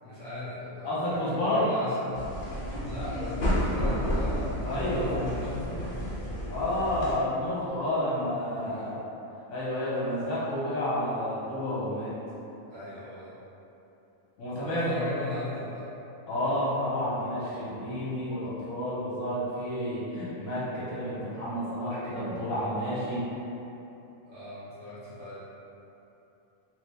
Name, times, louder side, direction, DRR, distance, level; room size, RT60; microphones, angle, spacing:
voice 1, 0.0-2.2 2.8-6.9 8.6-8.9 12.7-13.3 14.6-15.9 24.2-25.4, left 2 dB, 65° right, -14 dB, 1.6 m, -39 dB
voice 2, 0.8-1.7 4.6-5.3 6.5-9.0 9.5-12.1 14.4-15.1 16.3-23.2, left 1 dB, 75° left, -8 dB, 1.2 m, -30 dB
sound 1, 2.1-7.1, equal, 45° left, 0.8 m, -31 dB
3.3 x 2.6 x 3.2 m, 3.0 s
omnidirectional pair, 1.4 m